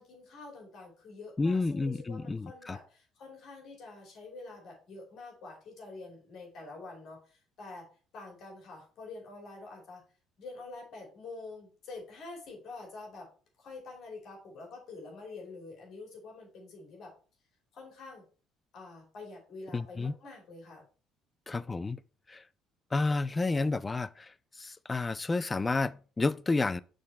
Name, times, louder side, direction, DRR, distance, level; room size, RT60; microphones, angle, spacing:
voice 1, 0.0-7.9 8.1-10.0 10.4-13.3 13.6-17.1 17.7-18.2 18.7-20.8, left 3 dB, 55° left, 2.8 m, -47 dB
voice 2, 1.4-2.8 19.7-20.1 21.5-22.0 22.3-22.4 22.9-26.8, left 3 dB, 25° left, 0.3 m, -30 dB
6.4 x 3.8 x 4.2 m
figure-of-eight pair, 50°, 0 cm